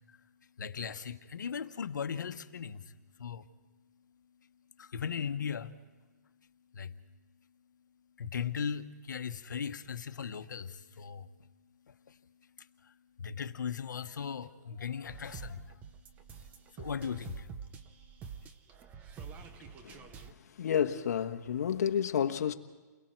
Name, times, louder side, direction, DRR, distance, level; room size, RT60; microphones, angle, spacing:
voice 1, 0.6-2.9 3.2-3.5 4.8-5.7 6.7-6.9 8.2-11.3 11.9-12.2 12.6-15.8 16.8-17.5, left 7 dB, 85° left, 1.2 m, -38 dB
sound 1, 15.0-20.3, right 6 dB, 15° right, 0.8 m, -47 dB
voice 2, 20.6-22.5, left 8 dB, 60° left, 1.3 m, -30 dB
29.5 x 22.0 x 4.6 m
hypercardioid pair, 165°, 10 cm